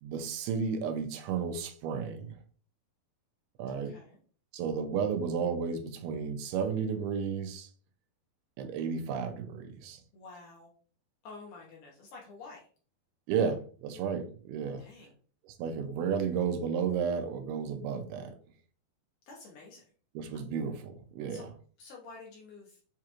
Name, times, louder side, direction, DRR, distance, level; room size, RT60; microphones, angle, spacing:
voice 1, 0.0-2.4 3.6-4.0 4.5-7.7 8.6-10.0 13.3-14.9 15.4-18.3 20.2-21.5, right 6 dB, 90° right, 7 dB, 2.6 m, -33 dB
voice 2, 3.7-4.2 10.1-10.7 11.2-12.6 14.8-15.1 19.3-19.8 21.3-21.5 21.8-22.8, left 3 dB, 70° left, -2 dB, 2.0 m, -49 dB
7.3 x 2.4 x 2.9 m, 0.43 s
omnidirectional pair, 4.4 m